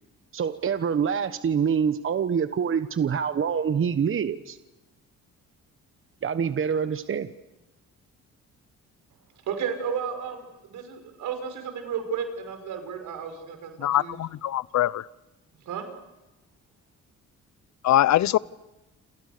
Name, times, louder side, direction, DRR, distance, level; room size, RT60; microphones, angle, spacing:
voice 1, 0.3-4.6 6.2-7.3, right 7 dB, 45° right, 11 dB, 1.2 m, -25 dB
voice 2, 9.5-14.2 15.7-15.9, right 7 dB, 80° right, 7 dB, 5.9 m, -33 dB
voice 3, 13.8-15.1 17.8-18.4, left 13 dB, 65° left, 20 dB, 0.9 m, -22 dB
29.5 x 28.0 x 6.8 m, 1.0 s
cardioid pair, 90°, 30 cm